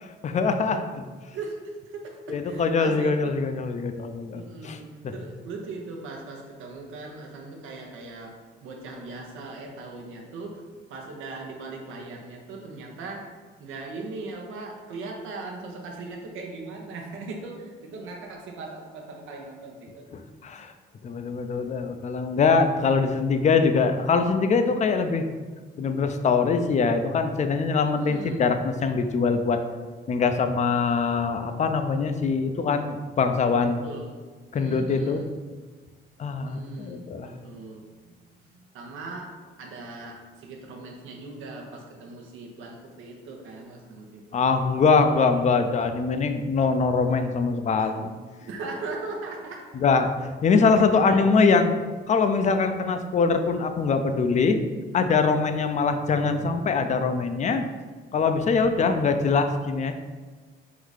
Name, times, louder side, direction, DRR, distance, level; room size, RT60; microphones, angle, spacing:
voice 1, 0.0-0.8 2.3-4.8 20.1-20.7 21.0-25.2 25.8-29.6 30.1-33.8 34.5-35.2 36.2-37.3 44.3-48.1 49.7-50.1 50.4-51.7 52.1-54.6 54.9-57.6 58.1-60.0, left 4 dB, 35° left, 7 dB, 0.4 m, -23 dB
voice 2, 1.3-3.4 4.3-10.6 10.9-13.3 13.6-20.2 20.6-20.7 28.0-28.4 33.8-34.2 34.5-35.3 36.4-38.0 38.4-39.3 39.6-44.5 47.8-47.9 48.4-49.7 50.9-51.2 58.5-58.7, right 3 dB, 85° right, 1 dB, 0.9 m, -39 dB
3.8 x 2.7 x 4.8 m, 1.4 s
cardioid pair, 90°, 20 cm